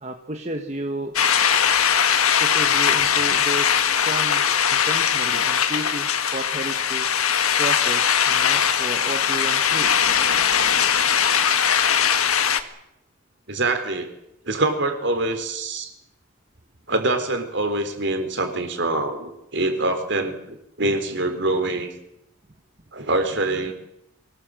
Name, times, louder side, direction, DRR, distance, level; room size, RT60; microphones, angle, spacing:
voice 1, 0.0-1.3 2.2-7.1 7.6-9.9, right 1 dB, 30° right, 4 dB, 1.4 m, -33 dB
sound 1, 1.2-12.6, left 8 dB, 85° left, 1.7 m, -20 dB
voice 2, 13.5-14.1 14.4-15.9 16.9-22.0 22.9-23.7, right 2 dB, 55° right, 7 dB, 3.7 m, -25 dB
24.5 x 18.5 x 7.7 m, 0.81 s
head